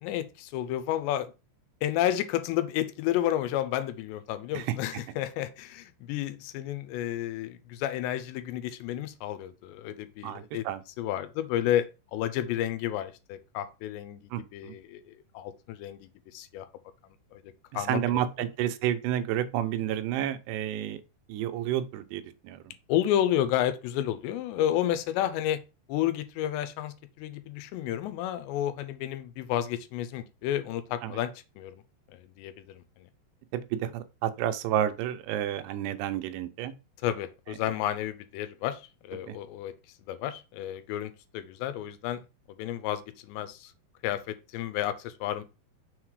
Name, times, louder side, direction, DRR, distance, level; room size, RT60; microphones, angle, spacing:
voice 1, 0.0-1.3 1.8-10.7 11.0-16.7 17.3-17.4 17.7-18.5 22.9-25.6 25.9-31.8 32.1-33.1 37.0-39.7 40.0-42.2 42.5-43.7 44.0-45.4, left 12 dB, 85° left, 2.9 m, -31 dB
voice 2, 10.2-10.8 14.3-14.7 17.7-21.0 21.3-22.7 31.0-31.1 33.5-36.7 39.3-39.4, right 11 dB, 80° right, 2.7 m, -30 dB
6.5 x 3.9 x 4.7 m
omnidirectional pair, 5.0 m